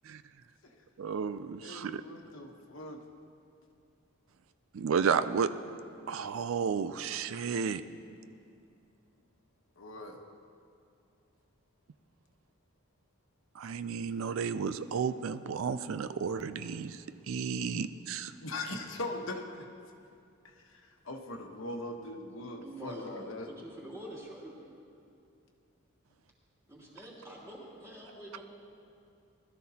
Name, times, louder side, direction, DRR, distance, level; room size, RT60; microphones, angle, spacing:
voice 1, 1.0-2.0 4.7-5.5 6.1-7.8 13.6-18.3, right 6 dB, 75° right, 11 dB, 0.4 m, -32 dB
voice 2, 1.6-3.0 9.8-10.2 18.4-19.4 21.0-23.5, left 2 dB, 70° left, 2 dB, 1.1 m, -40 dB
voice 3, 22.6-24.5 26.7-28.4, right 1 dB, 15° right, -6 dB, 2.9 m, -46 dB
20.5 x 13.0 x 2.8 m, 2.5 s
head